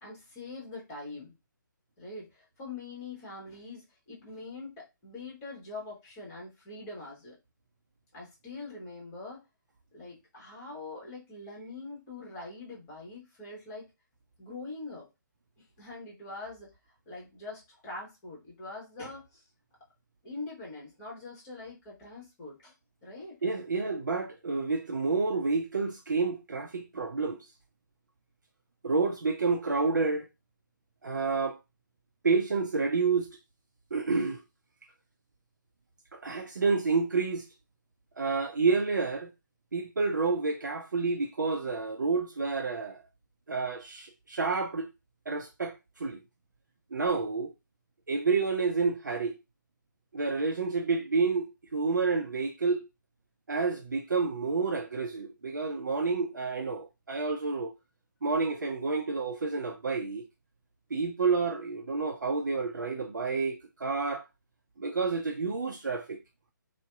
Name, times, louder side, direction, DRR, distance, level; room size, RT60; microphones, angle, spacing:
voice 1, 0.0-1.3 2.0-7.4 8.1-9.4 9.9-13.9 14.4-15.1 15.6-16.7 17.1-19.4 20.2-22.7 23.0-23.4 58.4-58.5, left 3 dB, 20° left, 1.0 m, -43 dB
voice 2, 23.4-27.5 28.8-30.3 31.0-31.6 32.2-33.3 33.9-34.4 36.1-37.5 38.2-39.3 39.7-43.0 43.5-44.9 45.3-46.2 46.9-47.5 48.1-49.4 50.1-52.9 53.5-57.7 58.2-60.2 60.9-64.2 64.8-66.2, right 4 dB, 65° right, 0.4 m, -29 dB
2.6 x 2.1 x 2.3 m
figure-of-eight pair, 140°, 11 cm